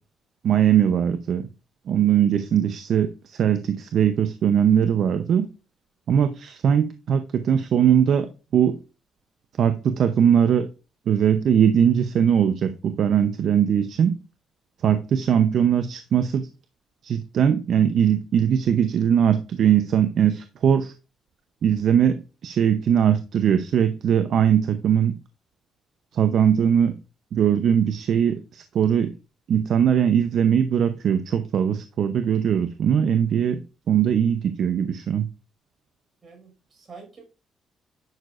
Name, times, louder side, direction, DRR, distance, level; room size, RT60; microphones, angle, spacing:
voice 1, 0.4-1.5 1.9-5.5 6.1-8.8 9.6-10.7 11.1-14.1 14.8-16.5 17.0-20.9 21.6-22.2 22.4-25.1 26.1-27.0 27.3-29.1 29.5-33.6 33.9-35.3, right 8 dB, 65° right, 9 dB, 0.7 m, -20 dB
voice 2, 36.2-37.2, right 4 dB, 45° right, 2 dB, 5.4 m, -46 dB
10.5 x 6.6 x 2.5 m, 0.31 s
cardioid pair, 75°, 0 cm